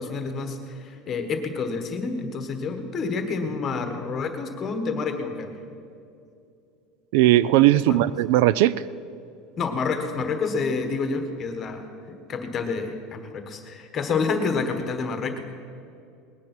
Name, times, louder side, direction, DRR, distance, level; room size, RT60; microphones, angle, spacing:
voice 1, 0.0-5.5 7.9-8.0 9.6-15.4, left 4 dB, 25° left, 7 dB, 1.3 m, -28 dB
voice 2, 7.1-8.7, right 15 dB, 65° right, 18 dB, 0.3 m, -18 dB
19.5 x 9.8 x 6.0 m, 2.6 s
cardioid pair, 175°, 0 cm